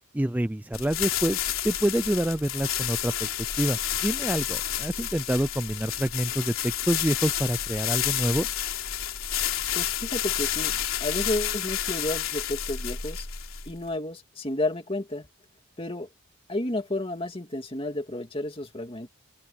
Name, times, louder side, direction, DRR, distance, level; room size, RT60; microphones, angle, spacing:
voice 1, 0.1-1.4 1.6-3.3 3.6-8.5, right 1 dB, 5° right, 0.4 m, -27 dB
sound 1, 0.7-13.9, left 11 dB, 70° left, 3.5 m, -30 dB
voice 2, 9.7-13.3 13.7-15.3 15.8-16.1 16.5-19.1, left 1 dB, 25° left, 2.4 m, -31 dB
head